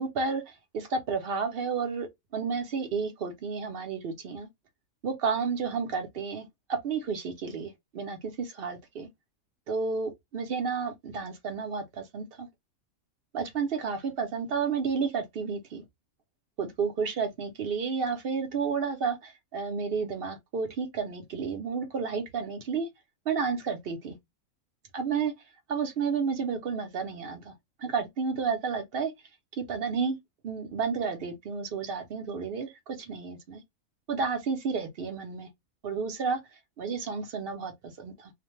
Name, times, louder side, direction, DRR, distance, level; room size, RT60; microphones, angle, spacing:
voice 1, 0.0-2.1 2.3-4.5 5.0-9.1 9.7-12.5 13.3-15.8 16.6-22.9 23.3-24.1 24.9-25.3 25.7-27.5 27.8-29.1 29.5-30.2 30.4-33.6 34.1-35.5 35.8-36.4 36.8-38.3, right 5 dB, 60° right, 0.6 m, -31 dB
2.5 x 2.1 x 2.9 m
omnidirectional pair, 1.5 m